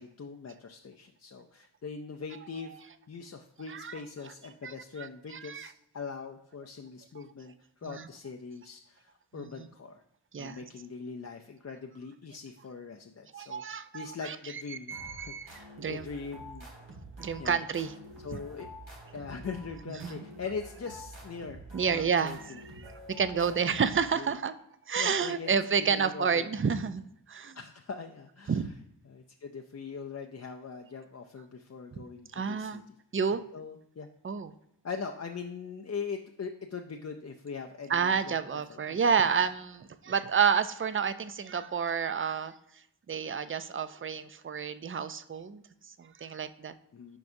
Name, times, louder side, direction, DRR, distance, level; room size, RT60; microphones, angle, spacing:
voice 1, 0.0-10.0 10.4-16.7 17.4-17.7 18.2-18.7 19.1-22.9 24.2-24.3 25.0-26.5 27.5-28.6 29.0-32.8 33.5-34.1 34.8-38.8 46.9-47.2, left 5 dB, 35° left, 3 dB, 0.4 m, -42 dB
voice 2, 3.7-4.0 4.6-5.7 7.8-8.1 9.3-9.7 10.3-10.6 13.3-14.6 14.9-16.1 17.2-17.9 18.3-18.4 20.0-20.3 21.7-24.5 24.9-27.6 28.5-28.7 32.3-32.8 33.1-33.4 34.2-34.5 37.9-46.7, right 6 dB, 30° right, 12 dB, 0.4 m, -30 dB
sound 1, 14.9-24.4, equal, 85° right, 1.8 m, -48 dB
10.5 x 4.6 x 2.6 m, 0.76 s
wide cardioid pair, 70°, 45 cm